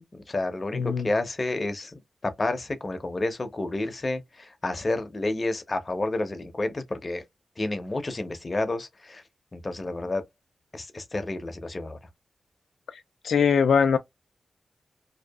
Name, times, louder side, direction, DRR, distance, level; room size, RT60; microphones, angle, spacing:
voice 1, 0.0-7.2 7.6-9.2 9.5-10.2 10.7-12.0, left 2 dB, 35° left, 0.7 m, -30 dB
voice 2, 0.7-1.1 13.2-14.0, left 6 dB, 90° left, 0.3 m, -21 dB
2.7 x 2.3 x 2.2 m
cardioid pair, 75°, 0 cm